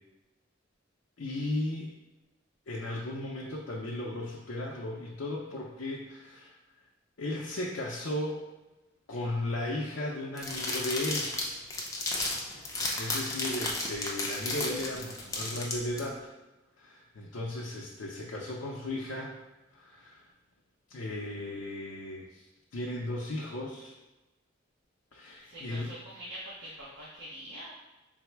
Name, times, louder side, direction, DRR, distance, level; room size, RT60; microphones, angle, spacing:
voice 1, 1.2-1.9 2.7-6.6 7.2-8.4 9.1-11.3 12.6-16.3 16.8-19.4 19.7-20.3 20.9-22.4 22.7-23.9 25.1-25.9, left 1 dB, 70° left, -3 dB, 0.5 m, -36 dB
sound 1, 10.4-16.0, left 2 dB, 15° left, 0.5 m, -33 dB
voice 2, 12.5-13.0 25.4-27.7, equal, 70° right, -7 dB, 0.9 m, -45 dB
3.9 x 2.0 x 4.4 m, 1.1 s
head